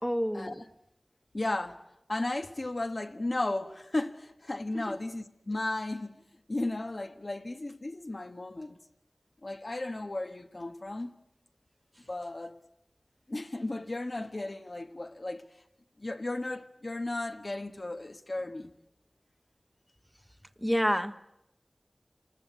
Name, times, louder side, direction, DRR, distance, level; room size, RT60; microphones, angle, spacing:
voice 1, 0.0-0.7 4.7-5.0 20.6-21.1, equal, 5° left, 1.1 m, -29 dB
voice 2, 1.3-1.8 2.1-6.1 6.5-8.8 9.4-11.1 12.1-12.6 13.3-15.4 16.0-18.7, left 2 dB, 60° left, 1.4 m, -34 dB
27.5 x 20.0 x 8.3 m
wide cardioid pair, 45°, 0 cm